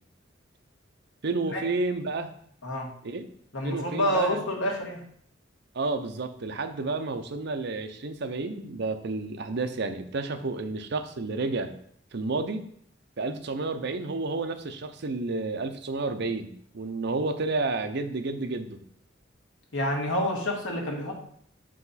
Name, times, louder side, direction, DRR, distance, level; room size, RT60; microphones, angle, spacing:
voice 1, 1.2-2.3 3.0-3.2 3.6-4.4 5.7-11.7 12.1-12.6 13.2-18.8, right 3 dB, 60° right, 7 dB, 0.7 m, -31 dB
voice 2, 3.5-5.0 19.7-21.2, left 1 dB, 80° left, 1 dB, 1.6 m, -28 dB
6.5 x 5.1 x 4.1 m, 0.63 s
head